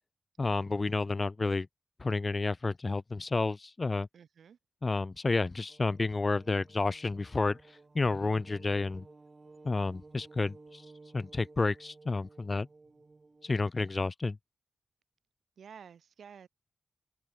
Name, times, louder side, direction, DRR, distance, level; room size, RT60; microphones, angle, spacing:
voice 1, 0.4-1.7 2.0-4.1 4.8-7.6 7.9-9.0 9.6-10.8 11.1-12.7 13.4-14.4, left 3 dB, 30° left, 0.4 m, -30 dB
voice 2, 4.1-4.6 13.8-13.9 15.6-16.5, right 7 dB, 90° right, 1.9 m, -52 dB
sound 1, 5.7-13.6, right 3 dB, 30° right, 1.5 m, -56 dB
wide cardioid pair, 115°, 0 cm